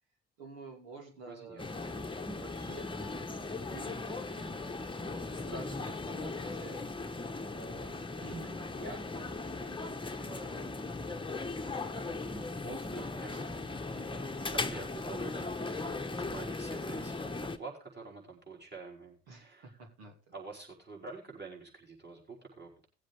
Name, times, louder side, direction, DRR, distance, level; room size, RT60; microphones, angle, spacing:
voice 1, 0.4-2.9 3.4-6.8 7.4-11.6 12.6-13.6 13.9-14.3 19.3-20.1, right 3 dB, 80° right, 2 dB, 2.8 m, -50 dB
voice 2, 1.2-1.6 13.0-13.4 14.5-19.9 20.3-22.9, right 4 dB, 30° right, -2 dB, 4.8 m, -47 dB
sound 1, 1.6-17.6, left 3 dB, 15° left, 1.1 m, -38 dB
18.0 x 7.7 x 3.4 m, 0.34 s
hypercardioid pair, 50°, 34 cm